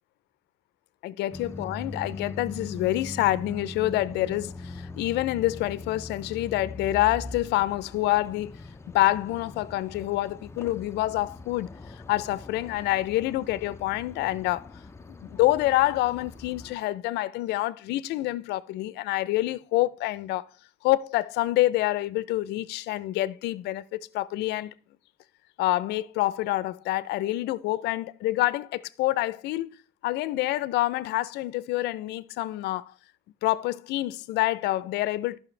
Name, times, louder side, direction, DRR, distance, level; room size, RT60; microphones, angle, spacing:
voice 1, 1.0-8.6 8.9-11.7 12.1-14.7 15.2-20.5 20.8-24.7 25.6-29.8 30.0-32.9 33.4-35.4, left 16 dB, 80° left, 0.5 m, -27 dB
sound 1, 1.3-16.8, left 3 dB, 15° left, 0.5 m, -41 dB
13.5 x 5.8 x 3.2 m
cardioid pair, 110°, 17 cm